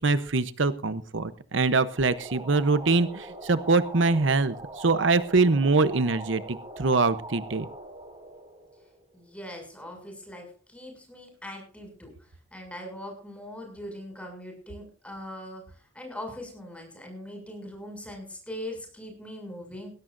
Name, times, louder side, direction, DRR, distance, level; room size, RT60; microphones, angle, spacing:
voice 1, 0.0-7.7, right 3 dB, 75° right, 13 dB, 0.9 m, -24 dB
sound 1, 1.9-9.3, right 1 dB, 20° right, 4.9 m, -42 dB
voice 2, 9.1-12.1 12.5-19.9, left 1 dB, 5° left, 2 dB, 6.7 m, -41 dB
20.5 x 17.0 x 2.6 m, 0.38 s
head